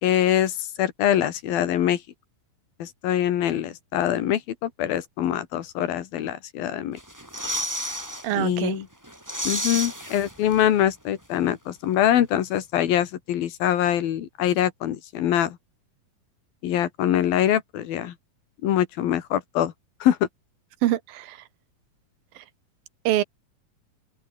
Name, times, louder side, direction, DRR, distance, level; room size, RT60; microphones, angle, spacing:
voice 1, 0.0-2.0 2.8-7.0 8.4-8.9 9.5-15.6 16.6-18.1 18.6-19.7 20.0-20.2, left 11 dB, 80° left, 3.6 m, -24 dB
sound 1, 7.0-8.3 8.6-8.7 9.0-10.8 11.1-11.2, equal, 5° right, 5.7 m, -31 dB
voice 2, 8.2-8.8 20.8-21.4 22.4-22.5 23.0-23.2, right 14 dB, 80° right, 3.0 m, -25 dB
open air
omnidirectional pair, 4.1 m